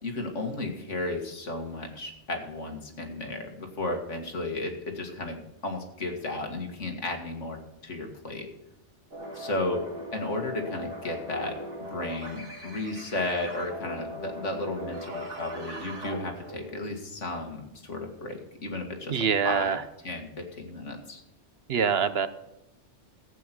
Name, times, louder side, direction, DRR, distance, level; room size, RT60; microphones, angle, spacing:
voice 1, 0.0-8.5 9.3-9.8 10.1-11.6 11.9-19.8 20.0-21.2, left 2 dB, 80° left, 4 dB, 2.3 m, -34 dB
sound 1, 9.1-16.8, equal, 85° right, 2.5 m, -39 dB
voice 2, 19.1-19.8 21.7-22.3, right 6 dB, 60° right, 13 dB, 0.9 m, -24 dB
14.0 x 8.5 x 6.1 m, 0.90 s
omnidirectional pair, 1.2 m